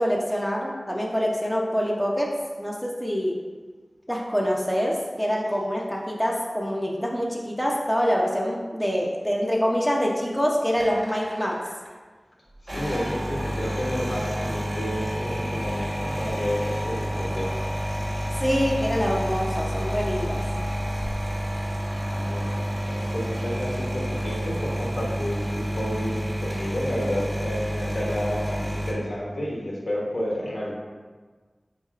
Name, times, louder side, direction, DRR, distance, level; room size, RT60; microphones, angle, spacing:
voice 1, 0.0-2.3 2.6-3.4 4.1-11.6 18.4-20.4, equal, 5° left, -2 dB, 0.5 m, -25 dB
sound 1, 10.8-11.9 12.6-28.9, equal, 45° right, 1.2 m, -29 dB
voice 2, 12.6-17.5 22.0-30.7, equal, 75° left, -4 dB, 0.9 m, -31 dB
4.2 x 3.9 x 2.4 m, 1.4 s
wide cardioid pair, 60°, 0 cm